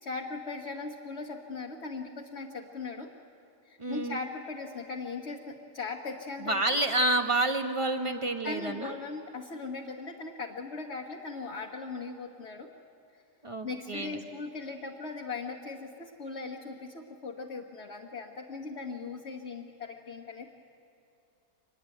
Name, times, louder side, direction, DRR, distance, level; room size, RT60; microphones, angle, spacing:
voice 1, 0.0-3.1 3.6-6.6 8.0-12.7 13.6-20.5, left 4 dB, 40° left, -1 dB, 1.4 m, -39 dB
voice 2, 3.8-4.2 6.4-8.9 13.4-14.3, right 2 dB, 20° right, 5 dB, 0.9 m, -29 dB
24.5 x 20.0 x 9.1 m, 2.6 s
omnidirectional pair, 1.9 m